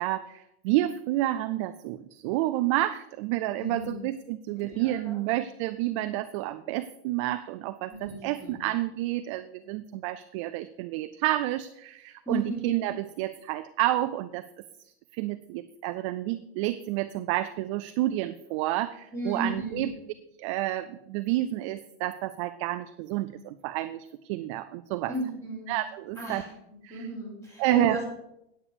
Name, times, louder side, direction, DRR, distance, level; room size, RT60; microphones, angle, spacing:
voice 1, 0.0-14.5 14.9-19.9 20.4-25.1 25.7-26.4 26.8-27.0 27.6-28.0, right 15 dB, 30° right, 11 dB, 0.4 m, -30 dB
voice 2, 3.6-4.0 4.6-5.2 7.9-8.6 12.2-12.7 19.1-19.9 25.1-25.7 26.1-26.5 26.9-28.1, right 1 dB, 10° left, -2 dB, 4.2 m, -34 dB
9.1 x 8.6 x 6.7 m, 0.82 s
supercardioid pair, 165°, 32 cm